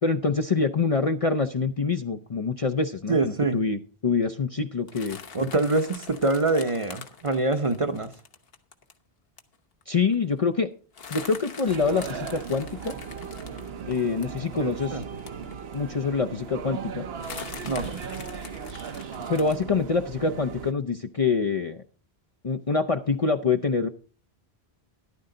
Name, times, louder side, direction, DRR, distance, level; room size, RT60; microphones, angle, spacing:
voice 1, 0.0-5.2 9.9-10.7 11.1-12.9 13.9-15.0 15.7-17.1 19.3-21.8 22.4-23.9, left 4 dB, 40° left, 0.6 m, -25 dB
voice 2, 3.1-3.6 5.3-8.1 14.6-15.0 17.6-18.1, right 2 dB, 35° right, 0.8 m, -25 dB
sound 1, 4.9-8.9 9.4-9.5 9.8-9.9 10.1-10.4 10.9-15.9 16.4-16.5 17.2-19.6, left 5 dB, 65° left, 1.3 m, -43 dB
sound 2, 11.7-20.7, right 6 dB, 70° right, 1.0 m, -37 dB
13.5 x 11.5 x 3.8 m
omnidirectional pair, 1.1 m